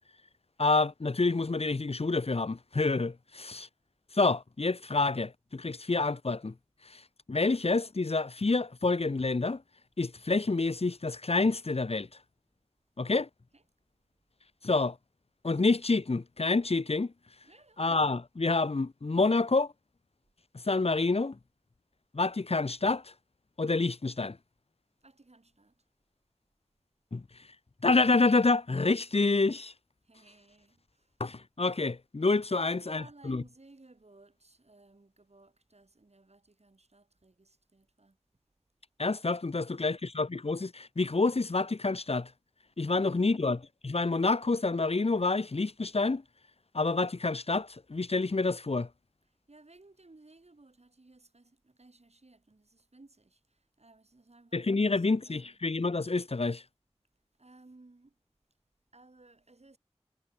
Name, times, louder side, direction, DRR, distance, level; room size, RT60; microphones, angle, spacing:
voice 1, 0.6-3.7 4.1-6.5 6.9-7.0 7.3-9.6 10.0-12.1 13.0-13.3 14.6-15.0 15.4-17.1 17.8-19.7 20.7-21.4 22.1-23.1 23.6-24.4 27.1-27.2 27.8-29.7 31.2-33.4 39.0-42.3 42.8-43.6 43.8-46.2 46.7-48.9 54.5-56.6, left 3 dB, 70° left, 0.9 m, -28 dB
voice 2, 17.4-17.8 25.0-25.8 30.0-31.2 32.5-38.2 39.5-40.0 42.9-43.4 49.5-55.6 57.4-58.2 58.9-59.8, right 2 dB, 80° right, 6.6 m, -58 dB
wide cardioid pair, 45°, 11 cm